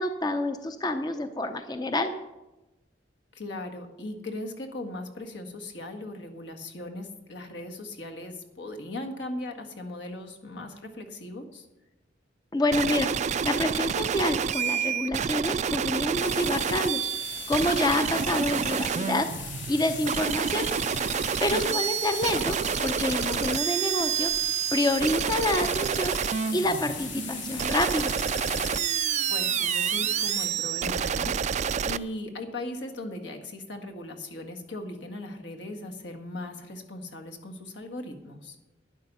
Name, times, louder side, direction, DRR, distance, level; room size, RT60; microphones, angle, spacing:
voice 1, 0.0-2.1 12.5-17.1 17.5-19.3 19.7-20.7 21.4-22.6 22.8-24.3 24.7-26.2 26.5-28.1, left 1 dB, 25° left, 8 dB, 0.6 m, -27 dB
voice 2, 3.3-11.7 21.5-21.8 29.3-38.6, left 1 dB, 70° left, 4 dB, 1.7 m, -38 dB
sound 1, 12.7-32.0, right 8 dB, 40° right, 0.3 m, -28 dB
sound 2, 16.2-30.4, left 5 dB, 85° left, 2.7 m, -38 dB
12.0 x 9.8 x 5.5 m, 1.0 s
head